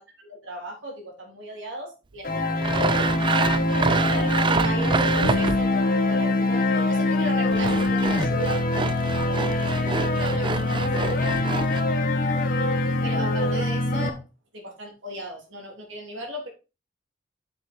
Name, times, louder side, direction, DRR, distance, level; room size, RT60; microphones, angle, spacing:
voice 1, 0.2-3.2 3.8-11.4 13.0-14.2 14.5-16.5, right 1 dB, 80° right, 0 dB, 3.5 m, -37 dB
sound 1, 2.2-14.1, left 2 dB, 50° left, 1.3 m, -23 dB
Sawing, 2.6-5.8 7.2-11.8, right 4 dB, 25° right, 0.4 m, -28 dB
7.2 x 6.2 x 4.4 m, 0.30 s
head